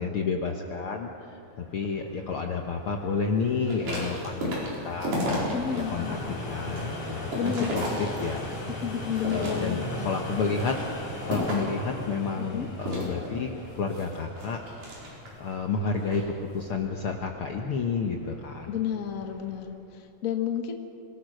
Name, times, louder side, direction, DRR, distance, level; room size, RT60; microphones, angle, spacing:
voice 1, 0.0-6.0 6.5-7.2 7.4-8.5 9.3-10.7 11.3-13.5 13.8-14.6 15.4-18.7, left 5 dB, 60° left, 3 dB, 1.5 m, -30 dB
sound 1, 1.4-19.7, left 1 dB, 75° left, 6.6 m, -40 dB
sound 2, 3.6-5.8 6.2-8.6 9.1-9.9 10.4-11.8 12.8-15.5 15.9-16.3, equal, 80° right, 6.2 m, -33 dB
voice 2, 5.5-6.3 7.4-8.0 8.8-10.1 12.4-12.7 18.7-20.7, left 8 dB, 40° left, 5 dB, 1.3 m, -31 dB
25.5 x 18.0 x 6.4 m, 2.7 s
omnidirectional pair, 3.6 m